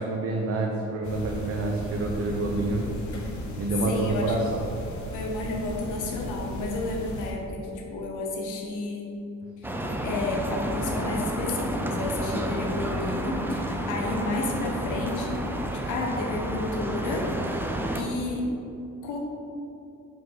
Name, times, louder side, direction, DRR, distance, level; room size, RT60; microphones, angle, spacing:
voice 1, 0.0-2.9 3.6-4.6, right 2 dB, 50° right, 0 dB, 0.7 m, -27 dB
sound 1, 1.0-7.3, left 1 dB, 70° left, 1.0 m, -36 dB
voice 2, 3.9-4.3 5.1-9.1 9.6-15.4 15.7-17.6 17.9-18.4 19.0-19.2, left 2 dB, 90° left, 0 dB, 1.1 m, -31 dB
sound 2, 9.6-18.0, right 1 dB, 5° right, 0.5 m, -30 dB
5.7 x 5.1 x 3.7 m, 2.8 s
cardioid pair, 90°, 30 cm